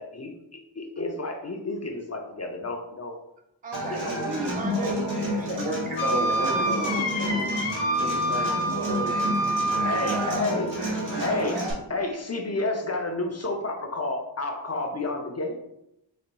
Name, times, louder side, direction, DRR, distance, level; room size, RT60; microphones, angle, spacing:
voice 1, 0.0-3.1 3.9-4.2 9.8-10.7 11.2-11.6 11.9-15.7, left 2 dB, 35° left, 3 dB, 0.5 m, -30 dB
voice 2, 3.6-5.7 9.9-10.4 11.1-11.5, right 3 dB, 20° right, 3 dB, 0.4 m, -36 dB
Human voice / Acoustic guitar, 3.7-11.7, equal, 40° right, 1.5 m, -30 dB
voice 3, 5.4-7.5 8.0-9.7, right 1 dB, 85° right, 0 dB, 1.2 m, -33 dB
Wind instrument woodwind instrument, 6.0-10.3, right 1 dB, 85° left, 0.8 m, -27 dB
4.1 x 4.0 x 2.2 m, 0.84 s
wide cardioid pair, 120°, 46 cm